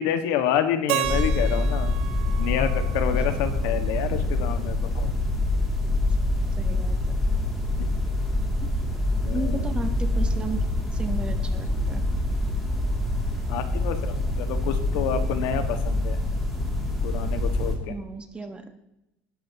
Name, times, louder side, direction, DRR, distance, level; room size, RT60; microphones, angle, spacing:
voice 1, 0.0-1.9 2.4-5.1 7.8-7.9 9.2-9.7 13.5-16.2 17.0-17.9, left 9 dB, 75° left, 7 dB, 1.8 m, -28 dB
Keyboard (musical), 0.9-3.9, right 16 dB, 85° right, 1.1 m, -33 dB
sound 1, 1.0-17.8, left 2 dB, ahead, 2.8 m, -25 dB
voice 2, 6.5-7.2 9.3-10.7 10.9-12.1 15.7-15.9 17.9-18.7, right 3 dB, 15° right, 7 dB, 1.2 m, -34 dB
19.0 x 11.5 x 3.0 m, 0.87 s
cardioid pair, 160°, 7 cm